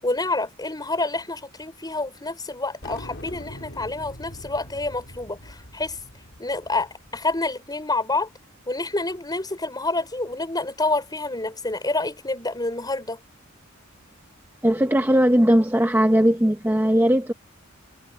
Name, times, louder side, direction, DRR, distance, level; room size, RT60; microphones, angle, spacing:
voice 1, 0.0-6.0 6.4-8.3 8.7-13.2, left 2 dB, 20° left, 5.5 m, -28 dB
sound 1, 2.8-7.5, left 1 dB, 60° left, 4.9 m, -42 dB
voice 2, 14.6-17.3, equal, 10° right, 0.9 m, -19 dB
head